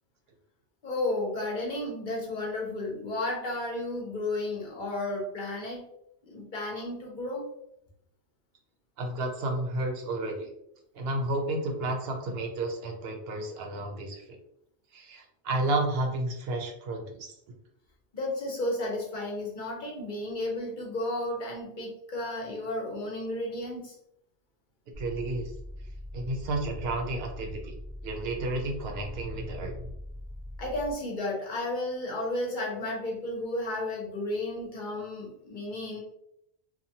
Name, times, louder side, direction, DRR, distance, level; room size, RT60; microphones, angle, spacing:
voice 1, 0.8-5.8 6.2-7.4 18.1-23.9 30.6-36.0, left 1 dB, 50° left, -1 dB, 0.8 m, -33 dB
voice 2, 9.0-10.5 10.9-14.2 14.9-17.3 25.0-25.5 26.1-27.7 28.0-29.7, right 2 dB, 70° right, 3 dB, 0.8 m, -31 dB
sound 1, 24.9-30.9, left 1 dB, 45° right, 0.3 m, -41 dB
2.8 x 2.2 x 2.7 m, 0.75 s
omnidirectional pair, 1.1 m